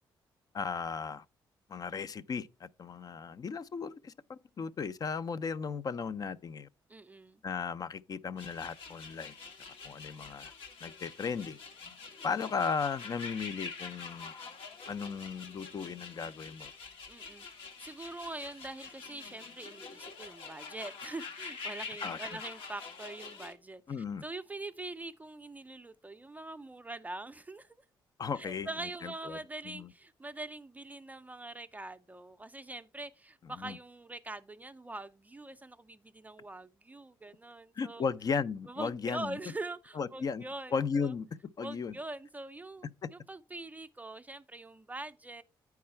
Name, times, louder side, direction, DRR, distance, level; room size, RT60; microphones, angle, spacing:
voice 1, 0.5-1.2 1.7-6.7 7.4-9.3 9.8-10.5 10.8-11.6 12.2-14.3 14.9-16.7 22.0-22.2 23.9-24.2 28.2-29.4 29.6-29.9 33.6-33.8 37.8-39.4 40.0-40.4 40.7-41.3 41.6-41.9 43.0-43.1, left 5 dB, 45° left, 0.5 m, -36 dB
voice 2, 6.9-7.4 17.1-23.8 24.2-27.8 28.4-38.1 38.7-41.1 41.6-45.4, right 2 dB, 20° right, 0.4 m, -43 dB
sound 1, 8.4-23.5, left 4 dB, 80° left, 1.3 m, -46 dB
8.5 x 4.7 x 4.3 m
cardioid pair, 75°, 9 cm